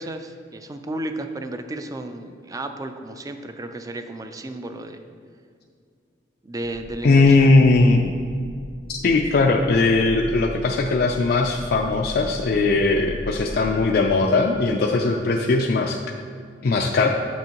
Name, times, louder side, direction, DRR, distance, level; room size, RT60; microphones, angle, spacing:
voice 1, 0.0-5.0 6.4-7.5 9.0-9.2, right 1 dB, 20° right, 7 dB, 0.4 m, -33 dB
sound 1, 6.6-14.3, equal, 90° left, 0.9 m, -38 dB
voice 2, 7.0-8.1 8.9-16.0 16.6-17.1, left 3 dB, 60° left, 1 dB, 0.4 m, -19 dB
8.1 x 6.2 x 2.9 m, 2.2 s
head